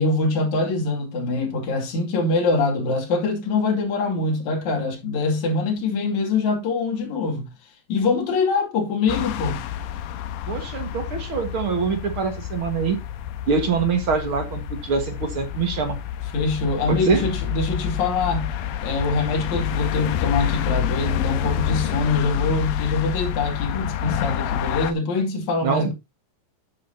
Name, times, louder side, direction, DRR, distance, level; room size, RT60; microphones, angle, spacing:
voice 1, 0.0-7.5 7.9-9.7 16.3-18.5 18.8-25.9, left 3 dB, 55° left, 3.7 m, -24 dB
sound 1, 9.1-24.9, left 10 dB, 75° left, 2.6 m, -28 dB
voice 2, 10.5-13.0 13.5-16.0 16.9-17.3 25.6-25.9, right 5 dB, 50° right, 1.8 m, -24 dB
11.5 x 7.8 x 2.8 m
omnidirectional pair, 4.3 m